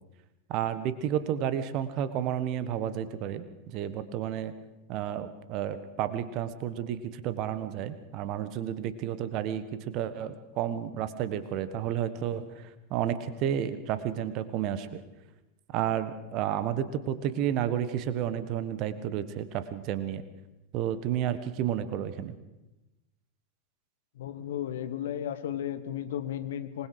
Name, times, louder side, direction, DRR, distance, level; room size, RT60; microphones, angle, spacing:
voice 1, 0.5-4.5 4.9-15.0 15.7-20.2 20.7-22.4, right 10 dB, 40° right, 13 dB, 1.5 m, -31 dB
voice 2, 24.1-26.9, left 10 dB, 60° left, 11 dB, 1.4 m, -34 dB
26.0 x 20.5 x 5.0 m, 1.0 s
figure-of-eight pair, 90°, 0 cm